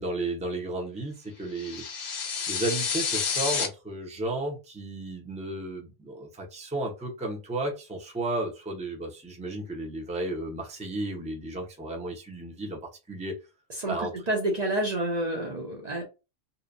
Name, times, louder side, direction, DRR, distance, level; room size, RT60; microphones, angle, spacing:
voice 1, 0.0-1.8 2.5-13.3 13.9-14.1, right 2 dB, 10° right, 0.5 m, -33 dB
sound 1, 1.6-3.7, left 6 dB, 55° left, 0.5 m, -29 dB
voice 2, 14.3-16.0, right 1 dB, 45° right, 0.7 m, -28 dB
2.7 x 2.1 x 2.5 m
omnidirectional pair, 1.1 m